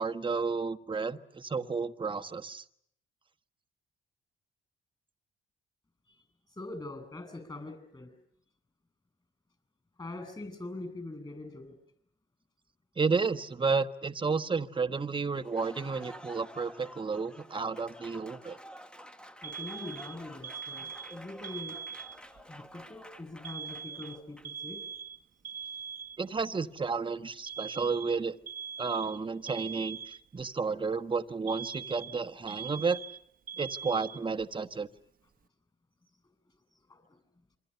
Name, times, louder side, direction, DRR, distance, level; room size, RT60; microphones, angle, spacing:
voice 1, 0.0-2.6 13.0-18.6 26.2-28.4 28.8-33.0 33.6-34.9, right 4 dB, 25° right, 10 dB, 1.3 m, -32 dB
voice 2, 6.5-8.1 10.0-11.8 19.4-21.8 22.5-24.8 36.9-37.0, left 2 dB, 20° left, 10 dB, 7.9 m, -43 dB
Applause, 15.3-24.7, equal, 5° left, 1.3 m, -50 dB
Alarm, 19.4-22.4 23.4-26.4 27.5-30.4 31.5-34.4, right 6 dB, 45° right, 1.1 m, -42 dB
27.0 x 24.5 x 6.8 m, 0.71 s
cardioid pair, 90°, 20 cm